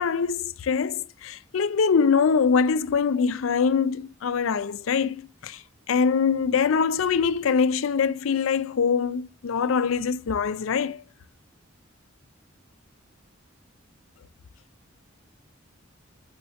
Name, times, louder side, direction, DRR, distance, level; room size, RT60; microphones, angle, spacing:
voice 1, 0.0-5.6 5.9-11.0, left 6 dB, 75° left, 0.4 m, -23 dB
8.7 x 6.3 x 2.8 m
head